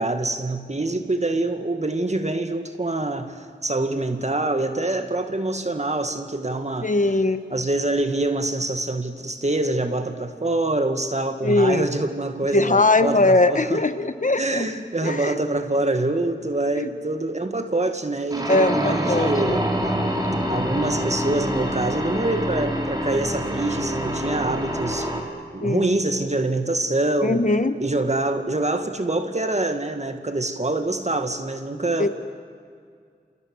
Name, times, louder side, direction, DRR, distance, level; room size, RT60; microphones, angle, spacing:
voice 1, 0.0-6.9 7.5-13.8 14.4-19.7 20.5-25.2 25.5-27.4 27.8-32.1, right 2 dB, 40° right, 7 dB, 1.8 m, -25 dB
voice 2, 6.8-7.4 11.4-11.9 12.5-14.7 15.0-15.4 16.8-16.9 18.5-19.7 25.6-25.9 27.2-27.8 32.0-32.1, left 2 dB, 45° left, 10 dB, 1.4 m, -20 dB
sound 1, 18.3-25.2, equal, 20° right, 3.6 m, -26 dB
29.0 x 27.5 x 6.6 m, 2.1 s
wide cardioid pair, 75°, 18 cm